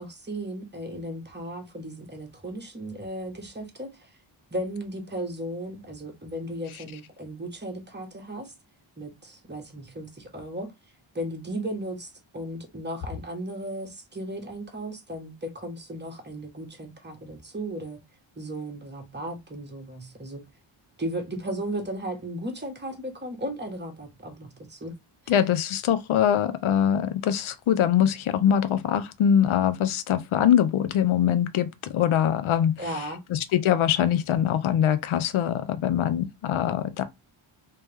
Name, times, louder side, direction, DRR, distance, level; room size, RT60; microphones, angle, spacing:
voice 1, 0.0-4.1 4.5-8.5 9.0-10.7 11.1-18.0 18.4-20.5 21.0-24.9 32.8-33.2, right 1 dB, 20° right, 1.2 m, -35 dB
voice 2, 25.3-32.9 33.3-37.0, left 9 dB, 75° left, 0.6 m, -23 dB
3.2 x 2.9 x 3.4 m
wide cardioid pair, 85°, 49 cm